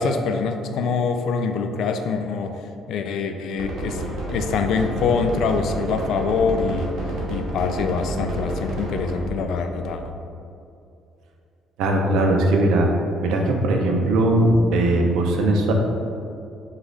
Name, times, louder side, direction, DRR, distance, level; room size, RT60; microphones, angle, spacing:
voice 1, 0.0-2.6 2.9-6.9 7.3-10.0, left 5 dB, 70° left, 6 dB, 0.3 m, -24 dB
sound 1, 3.6-9.2, right 2 dB, 65° right, 1.0 m, -29 dB
voice 2, 11.8-12.9 13.2-15.7, right 1 dB, 90° right, 2 dB, 0.5 m, -19 dB
5.1 x 2.4 x 3.7 m, 2.5 s
cardioid pair, 140°, 0 cm